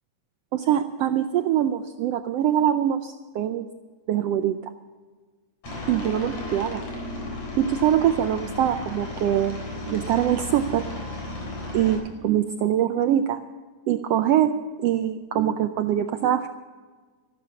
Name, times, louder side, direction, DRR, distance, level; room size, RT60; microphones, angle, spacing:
voice 1, 0.5-3.6 4.1-4.6 5.9-6.8 7.6-9.6 9.9-10.9 11.7-13.4 13.9-16.5, right 10 dB, 85° right, 8 dB, 1.4 m, -23 dB
Aircraft, 5.6-11.9, left 2 dB, 60° left, 5.2 m, -34 dB
14.0 x 12.5 x 7.0 m, 1.4 s
omnidirectional pair, 3.5 m